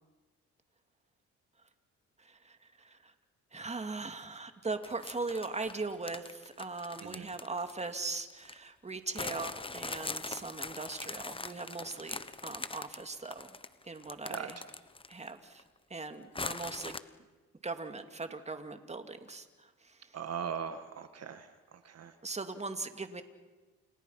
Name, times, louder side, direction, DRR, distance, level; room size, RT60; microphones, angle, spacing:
voice 1, 2.2-3.1 3.5-13.6 13.8-14.6 15.1-15.6 15.9-17.0 17.6-20.2 22.2-23.2, right 3 dB, 20° right, 7 dB, 2.5 m, -40 dB
sound 1, 4.8-8.6 9.1-15.3 15.6-15.7 16.3-17.0, left 3 dB, 20° left, 1.2 m, -41 dB
voice 2, 20.1-21.5 21.8-22.1, right 7 dB, 55° right, 9 dB, 1.7 m, -39 dB
29.0 x 29.0 x 5.8 m, 1.2 s
cardioid pair, 90°, 30 cm